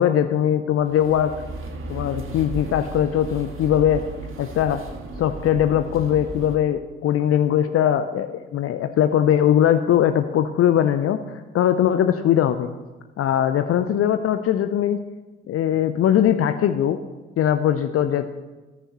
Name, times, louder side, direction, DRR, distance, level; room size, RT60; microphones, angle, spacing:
voice 1, 0.0-1.3 1.9-4.0 4.4-4.8 5.2-12.7 13.2-15.0 15.5-17.0 17.4-18.3, left 10 dB, 45° left, 9 dB, 0.7 m, -20 dB
sound 1, 0.8-6.6, right 2 dB, 40° right, 1.9 m, -35 dB
26.0 x 10.0 x 3.1 m, 1.2 s
figure-of-eight pair, 40°, 32 cm